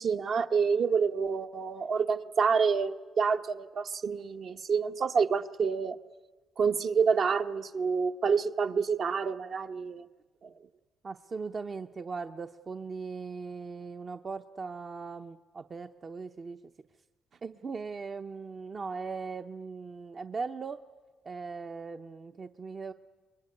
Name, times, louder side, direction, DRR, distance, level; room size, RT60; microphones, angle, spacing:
voice 1, 0.0-6.0 6.6-10.0 10.4-10.5, right 5 dB, 55° right, 6 dB, 1.1 m, -28 dB
voice 2, 11.0-16.6 17.4-20.8 21.2-22.9, right 4 dB, 40° right, 7 dB, 0.8 m, -39 dB
26.5 x 22.0 x 9.8 m, 1.3 s
cardioid pair, 90°, 0 cm